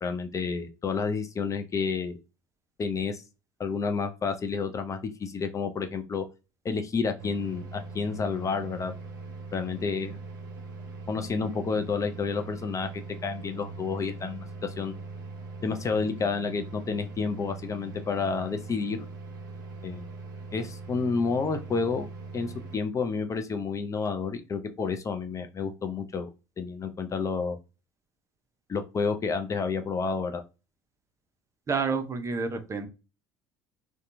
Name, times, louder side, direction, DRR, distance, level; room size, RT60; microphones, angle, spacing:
voice 1, 0.0-2.2 2.8-3.2 3.6-6.2 6.6-8.9 9.5-10.2 11.1-14.9 15.6-19.0 19.8-20.0 20.5-22.1 22.3-26.3 26.6-27.6 28.7-30.4, left 5 dB, 30° left, 7 dB, 0.4 m, -30 dB
sound 1, 7.2-22.8, right 3 dB, 80° right, 0.6 m, -41 dB
voice 2, 31.7-32.9, right 4 dB, 30° right, 7 dB, 0.6 m, -29 dB
2.7 x 2.2 x 2.6 m, 0.30 s
hypercardioid pair, 65°, 10 cm